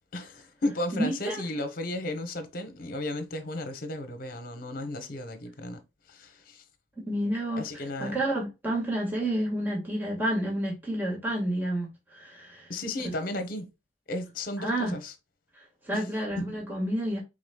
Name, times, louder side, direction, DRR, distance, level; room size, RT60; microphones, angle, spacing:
voice 1, 0.1-5.8 6.1-6.6 7.6-8.2 12.7-13.7 14.1-15.1 15.9-16.0 16.4-16.5, left 1 dB, 55° left, 0.9 m, -34 dB
voice 2, 0.9-1.4 7.1-12.7 14.6-14.9 15.8-17.2, right 1 dB, 10° right, 1.6 m, -30 dB
4.8 x 4.0 x 2.2 m
head